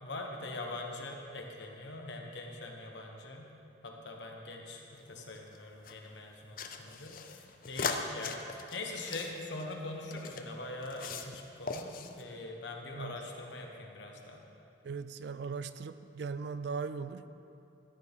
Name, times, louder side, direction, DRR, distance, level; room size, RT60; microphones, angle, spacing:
voice 1, 0.0-3.5 3.8-14.4, left 2 dB, 70° left, 1 dB, 1.2 m, -43 dB
sound 1, 5.0-5.9 6.6-10.4 10.8-11.4 11.7-12.2, left 5 dB, 45° left, 0.5 m, -40 dB
voice 2, 14.8-17.3, right 5 dB, 60° right, 12 dB, 0.4 m, -38 dB
14.0 x 9.6 x 3.7 m, 2.7 s
head